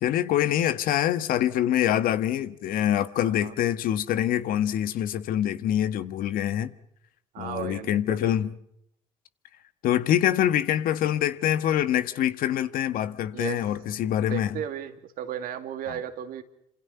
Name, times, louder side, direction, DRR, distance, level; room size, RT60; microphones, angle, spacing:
voice 1, 0.0-6.7 7.4-8.5 9.8-14.5, left 11 dB, 65° left, 1.6 m, -25 dB
voice 2, 3.1-3.6 7.3-8.4 13.3-13.6 14.2-16.4, right 10 dB, 65° right, 2.6 m, -35 dB
29.5 x 26.5 x 5.8 m
hypercardioid pair, 55°, 16 cm